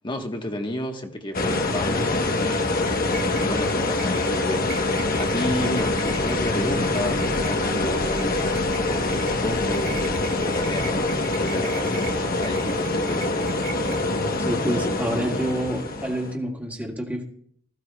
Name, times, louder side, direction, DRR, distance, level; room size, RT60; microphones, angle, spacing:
voice 1, 0.0-9.9 10.3-13.7, left 1 dB, 25° left, 1.3 m, -32 dB
sound 1, 1.3-16.3, left 2 dB, 45° left, 1.1 m, -25 dB
sound 2, 2.6-14.5, right 3 dB, 50° right, 1.4 m, -41 dB
voice 2, 14.4-17.2, equal, 10° right, 1.9 m, -28 dB
19.5 x 15.0 x 2.3 m
head